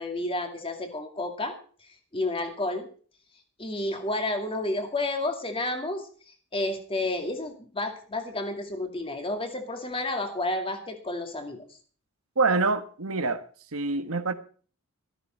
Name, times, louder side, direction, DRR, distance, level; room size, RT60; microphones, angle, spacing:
voice 1, 0.0-1.5 2.1-2.9 3.6-6.0 6.5-11.6, left 2 dB, 25° left, 5 dB, 2.3 m, -30 dB
voice 2, 12.4-13.4 13.7-14.3, right 3 dB, 80° right, 9 dB, 1.4 m, -25 dB
13.5 x 13.0 x 4.4 m, 0.42 s
head